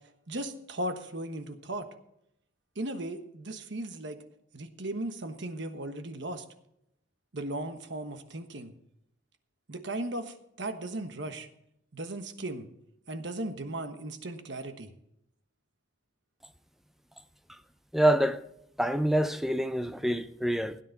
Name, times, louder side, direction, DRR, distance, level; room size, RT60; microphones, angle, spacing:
voice 1, 0.3-1.9 2.7-4.2 4.5-6.4 7.3-8.7 9.7-11.5 11.9-12.7 13.1-14.9, right 1 dB, 60° right, 1.3 m, -36 dB
voice 2, 17.9-18.4 18.8-20.8, right 1 dB, ahead, 0.5 m, -26 dB
16.5 x 9.8 x 4.0 m
head